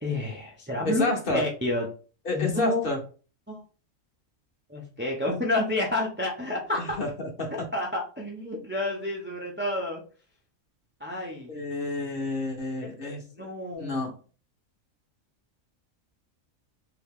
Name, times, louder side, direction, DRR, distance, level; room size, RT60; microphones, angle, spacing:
voice 1, 0.0-1.9 2.3-2.8 3.5-3.6 4.7-7.0 7.7-10.0 11.0-11.5 13.0-14.0, left 2 dB, 20° right, -1 dB, 0.3 m, -30 dB
voice 2, 0.8-1.4 2.2-3.0 6.7-7.5 11.5-13.5 13.8-14.1, left 2 dB, 50° left, 1 dB, 1.0 m, -29 dB
2.8 x 2.8 x 3.5 m, 0.37 s
omnidirectional pair, 1.3 m